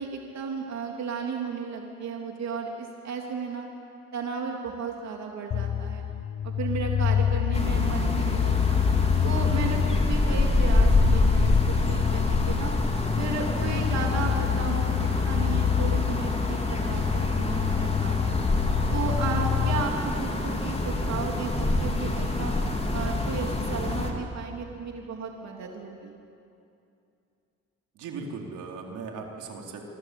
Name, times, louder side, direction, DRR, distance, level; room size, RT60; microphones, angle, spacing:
voice 1, 0.0-3.7 4.1-6.0 6.4-8.8 9.2-12.7 13.1-18.4 18.9-22.5 22.9-26.1, right 5 dB, 65° right, 1 dB, 3.4 m, -34 dB
sound 1, 5.5-19.8, left 9 dB, 45° left, 0.9 m, -27 dB
sound 2, 7.5-24.1, left 2 dB, 20° left, 4.3 m, -26 dB
voice 2, 28.0-29.8, right 4 dB, 90° right, 1 dB, 4.2 m, -38 dB
26.5 x 26.0 x 8.7 m, 2.6 s
cardioid pair, 90°, 30 cm